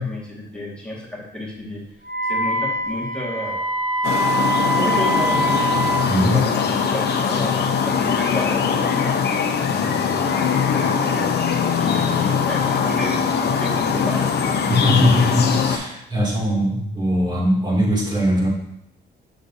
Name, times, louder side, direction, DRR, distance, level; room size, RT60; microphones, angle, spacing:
voice 1, 0.0-1.8 2.2-3.7 4.6-5.9 6.3-9.1 9.6-11.3 11.8-14.3, left 1 dB, 5° left, -4 dB, 1.9 m, -31 dB
Wind instrument woodwind instrument, 2.0-6.1, right 1 dB, 80° right, 2.5 m, -23 dB
sound 1, 4.0-15.8, left 6 dB, 55° left, 0.8 m, -21 dB
voice 2, 6.1-6.4 14.7-18.5, left 1 dB, 20° right, -4 dB, 2.6 m, -20 dB
6.3 x 6.2 x 2.7 m, 0.75 s
cardioid pair, 90°, 20 cm